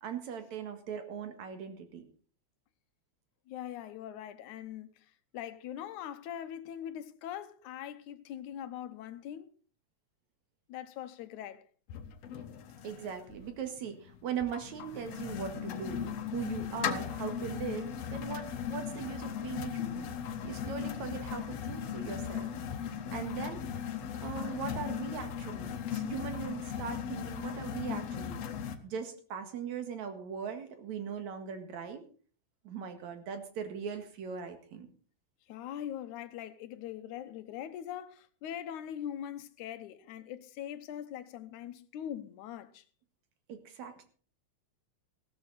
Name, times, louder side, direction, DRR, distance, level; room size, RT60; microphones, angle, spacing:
voice 1, 0.0-2.1 12.8-20.1 20.4-22.5 23.1-23.6 24.2-28.5 28.8-32.0 32.6-34.9 43.5-44.0, right 7 dB, 75° right, 3.1 m, -40 dB
voice 2, 3.5-9.5 10.7-11.6 35.5-42.8, left 10 dB, 90° left, 2.4 m, -42 dB
sound 1, 11.9-28.8, left 8 dB, 65° left, 2.1 m, -38 dB
15.5 x 12.5 x 4.1 m
omnidirectional pair, 3.3 m